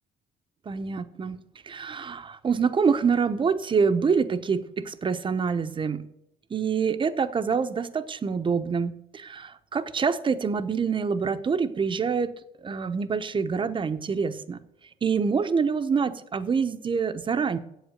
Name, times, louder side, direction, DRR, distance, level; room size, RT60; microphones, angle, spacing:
voice 1, 0.7-1.4 1.6-6.0 6.5-12.3 12.6-14.6 15.0-17.6, right 5 dB, 30° right, 11 dB, 0.8 m, -26 dB
8.1 x 8.0 x 8.0 m, 0.82 s
cardioid pair, 110°, 17 cm